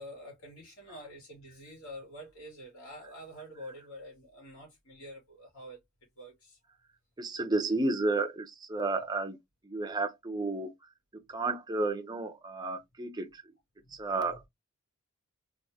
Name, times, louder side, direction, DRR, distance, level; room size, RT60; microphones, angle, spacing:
voice 1, 0.0-5.8 6.2-6.6, equal, 65° left, 2.1 m, -47 dB
voice 2, 7.2-9.4 9.6-10.7 11.3-13.4 13.9-14.5, right 2 dB, 20° right, 0.6 m, -32 dB
3.5 x 2.6 x 2.7 m
head